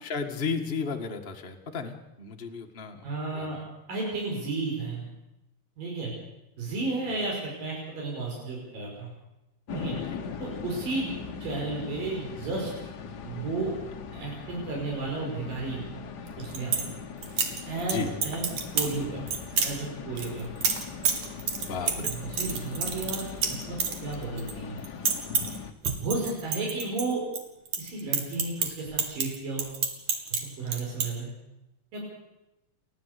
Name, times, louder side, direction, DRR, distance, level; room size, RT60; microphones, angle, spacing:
voice 1, 0.0-3.0 3.3-3.6 10.1-10.2 17.9-18.1 21.6-22.1, left 5 dB, 25° left, 3 dB, 1.3 m, -34 dB
voice 2, 3.0-3.6 3.9-5.1 5.8-6.1 6.6-9.1 9.7-10.0 10.4-11.1 11.4-12.7 13.2-13.7 14.1-15.9 16.4-17.0 17.7-18.5 18.7-19.3 19.6-20.5 21.9-23.8 24.0-24.8 26.0-27.2 27.8-29.7 30.4-31.3 31.9-32.2, right 3 dB, 75° right, -2 dB, 7.3 m, -33 dB
sound 1, 9.7-25.7, left 5 dB, 80° left, 0.9 m, -40 dB
sound 2, 16.3-16.9 17.2-17.9 18.2-18.9 19.3-19.7 20.2-24.5 24.8-25.6 25.8-27.4 27.7-30.4 30.7-31.1, right 6 dB, 55° right, 3.4 m, -28 dB
29.5 x 13.0 x 8.3 m, 0.94 s
omnidirectional pair, 3.9 m